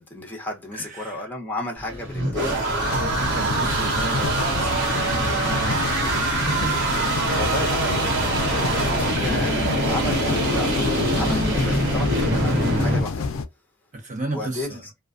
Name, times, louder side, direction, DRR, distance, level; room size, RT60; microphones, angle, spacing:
voice 1, 0.0-2.9 7.3-13.3 14.3-14.8, left 1 dB, 10° left, 0.7 m, -33 dB
voice 2, 0.7-1.3 1.9-2.0 2.9-6.9 9.2-9.3 13.9-14.8, right 2 dB, 40° right, 0.8 m, -33 dB
sound 1, 1.8-13.0, right 1 dB, 60° right, 1.1 m, -24 dB
sound 2, 2.8-13.4, left 4 dB, 70° left, 0.4 m, -28 dB
2.3 x 2.3 x 2.4 m
head